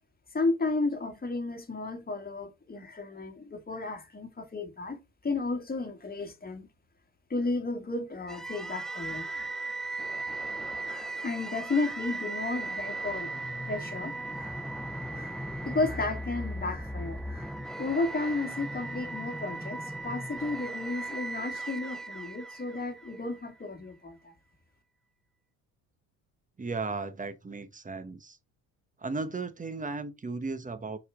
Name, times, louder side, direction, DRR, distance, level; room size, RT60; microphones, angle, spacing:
voice 1, 0.3-6.6 7.3-9.5 10.8-13.3 13.6-14.6 15.1-15.4 15.6-17.5 17.8-24.3, left 3 dB, 20° left, 2.0 m, -33 dB
sound 1, 8.3-23.4, right 2 dB, ahead, 0.4 m, -37 dB
voice 2, 26.6-28.4 29.0-31.0, right 3 dB, 20° right, 1.2 m, -35 dB
6.2 x 5.1 x 3.7 m
supercardioid pair, 70°, 41 cm